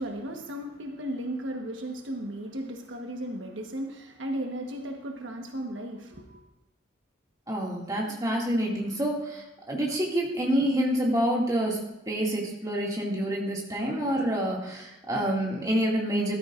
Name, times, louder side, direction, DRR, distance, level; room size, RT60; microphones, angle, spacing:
voice 1, 0.0-6.3, right 1 dB, 80° right, 2 dB, 1.3 m, -35 dB
voice 2, 7.5-11.8 12.1-16.4, equal, 20° right, -3 dB, 2.2 m, -27 dB
14.0 x 13.0 x 2.5 m, 0.93 s
head